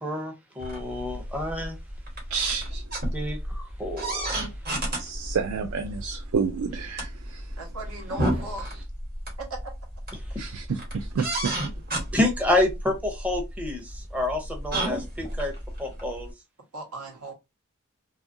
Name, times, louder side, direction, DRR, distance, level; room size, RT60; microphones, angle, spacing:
voice 1, 0.0-1.8 3.1-4.4 10.2-10.5 12.1-15.5 15.8-16.3, left 1 dB, 5° right, 0.6 m, -28 dB
sound 1, 0.6-16.3, right 1 dB, 45° right, 1.1 m, -33 dB
voice 2, 2.3-2.8 4.9-7.5 10.4-11.6, right 5 dB, 70° right, 0.4 m, -30 dB
voice 3, 7.6-8.7 16.7-17.3, right 2 dB, 90° right, 1.2 m, -38 dB
2.7 x 2.4 x 2.5 m
head